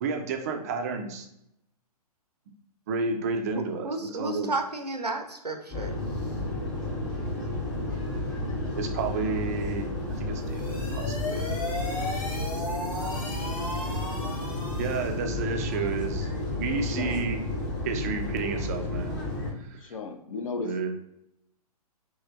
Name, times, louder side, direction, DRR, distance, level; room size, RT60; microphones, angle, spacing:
voice 1, 0.0-1.3 2.9-4.5 6.3-6.5 8.8-9.9 10.2-11.5 14.8-16.3 16.6-17.4 17.8-19.2 19.6-19.8 20.6-20.9, right 4 dB, 25° right, 4 dB, 0.3 m, -31 dB
voice 2, 3.5-5.9, right 2 dB, 90° right, 4 dB, 0.6 m, -32 dB
sound 1, 5.7-19.5, left 2 dB, 30° left, 0.9 m, -32 dB
sound 2, 10.3-15.1, left 2 dB, 15° left, 1.2 m, -36 dB
voice 3, 16.6-17.3 19.8-20.7, left 4 dB, 60° left, 5 dB, 0.5 m, -36 dB
3.1 x 2.8 x 2.5 m, 0.79 s
figure-of-eight pair, 120°, 20 cm